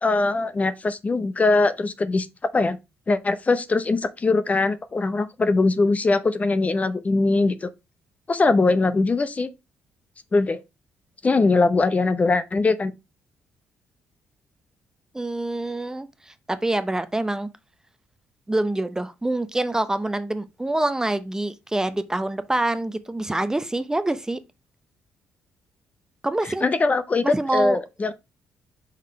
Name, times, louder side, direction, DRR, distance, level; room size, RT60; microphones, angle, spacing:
voice 1, 0.0-2.3 2.5-2.8 3.1-7.7 8.3-9.5 10.3-10.6 11.2-12.9 26.6-28.1, left 3 dB, 30° left, 0.7 m, -21 dB
voice 2, 15.1-17.5 18.5-24.4 26.2-26.7 27.2-27.8, right 2 dB, 15° right, 0.7 m, -26 dB
5.7 x 3.7 x 4.7 m
supercardioid pair, 70°, 5 cm